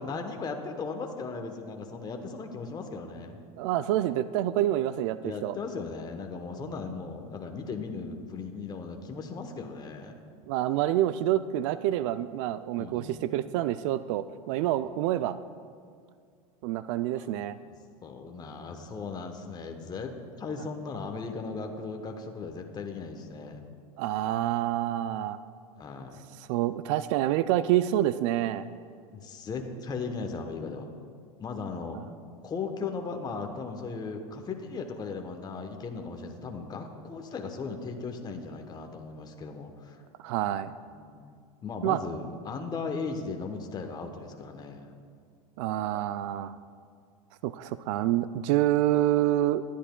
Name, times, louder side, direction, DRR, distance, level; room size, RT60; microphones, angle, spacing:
voice 1, 0.0-3.4 5.2-10.1 12.8-13.4 14.8-14.9 17.6-17.7 18.0-23.6 25.8-26.2 29.1-30.9 31.4-32.0 32.4-40.0 40.9-41.3 41.6-44.9, left 4 dB, 20° left, 4 dB, 0.9 m, -37 dB
voice 2, 3.6-5.6 10.4-15.4 16.6-17.6 24.0-25.4 26.4-28.7 40.2-40.7 41.8-42.0 45.6-46.5 47.4-49.6, right 13 dB, 55° right, 13 dB, 0.4 m, -27 dB
20.0 x 10.0 x 2.2 m, 2.1 s
hypercardioid pair, 100°, 19 cm